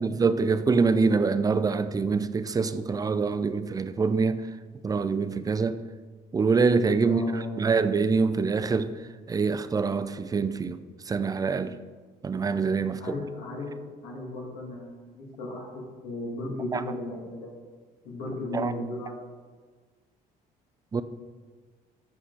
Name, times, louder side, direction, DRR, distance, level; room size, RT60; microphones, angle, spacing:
voice 1, 0.0-4.4 4.8-5.8 6.3-8.9 9.3-11.8 12.2-13.0 16.7-16.8 18.5-18.7 20.9-21.0, right 4 dB, 20° right, 0.5 m, -25 dB
voice 2, 7.1-7.7 13.0-13.7 14.0-15.7 16.0-17.5 18.0-19.3, left 1 dB, 90° left, 2.7 m, -35 dB
13.5 x 4.8 x 4.2 m
cardioid pair, 110°, 17 cm